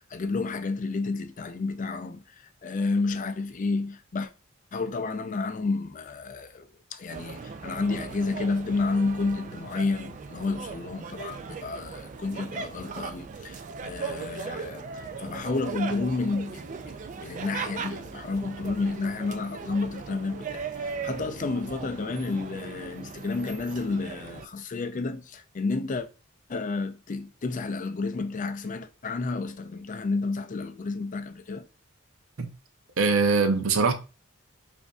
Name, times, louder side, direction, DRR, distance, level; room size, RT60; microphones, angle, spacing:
voice 1, 0.0-2.2 2.6-4.3 4.7-26.1 26.5-31.6, left 3 dB, 35° left, 0.4 m, -31 dB
sound 1, 7.1-24.5, right 5 dB, 35° right, 0.3 m, -38 dB
voice 2, 33.0-33.9, right 4 dB, 75° right, 0.6 m, -22 dB
5.0 x 2.6 x 2.3 m
head